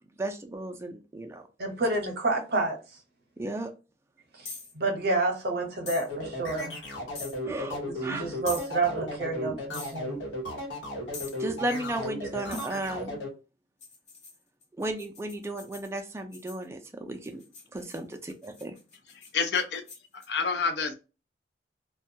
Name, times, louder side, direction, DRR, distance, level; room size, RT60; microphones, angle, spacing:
voice 1, 0.2-1.5 3.4-3.7 7.4-8.3 11.4-13.2 14.8-17.4 17.7-18.8, right 1 dB, 15° right, 0.3 m, -34 dB
voice 2, 1.6-2.8 4.7-6.7 8.0-10.2, right 2 dB, 60° right, 0.7 m, -29 dB
sound 1, 4.4-4.7 5.9-6.1 7.1-7.4 8.5-8.7 9.7-10.0 11.1-11.4 12.5-12.8 13.8-16.6 17.2-20.3, left 4 dB, 40° left, 0.9 m, -43 dB
sound 2, 6.1-13.3, left 1 dB, 90° left, 1.0 m, -35 dB
voice 3, 19.1-19.8 20.1-20.9, left 5 dB, 65° left, 0.5 m, -28 dB
2.2 x 2.2 x 2.7 m
head